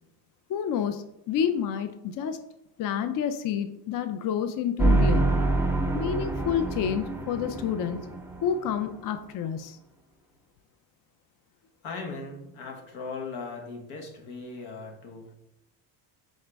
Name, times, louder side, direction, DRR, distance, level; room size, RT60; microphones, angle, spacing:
voice 1, 0.5-2.4 2.8-5.3 5.9-8.1 8.4-9.8, left 8 dB, 45° left, 9 dB, 0.4 m, -29 dB
sound 1, 4.8-8.9, right 2 dB, 5° right, 0.7 m, -26 dB
voice 2, 11.8-15.3, left 4 dB, 75° left, 2 dB, 1.3 m, -38 dB
4.1 x 3.8 x 3.4 m, 0.82 s
supercardioid pair, 75°, 49 cm